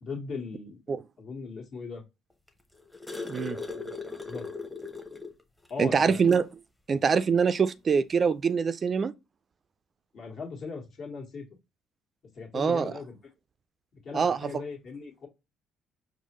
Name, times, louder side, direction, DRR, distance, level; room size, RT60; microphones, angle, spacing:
voice 1, 0.0-0.8 1.2-2.0 3.7-3.8 4.2-4.5 5.7-6.3 10.1-11.4 12.3-13.2 14.0-15.3, left 4 dB, 55° left, 1.5 m, -38 dB
sound 1, 2.5-5.4 5.8-5.9 6.3-6.5 7.6-7.7, left 3 dB, 5° left, 0.8 m, -38 dB
voice 2, 5.8-6.5 6.9-9.1 12.5-12.9 14.1-14.5, right 6 dB, 40° right, 0.3 m, -24 dB
4.6 x 2.0 x 3.1 m
hypercardioid pair, 65°, 0 cm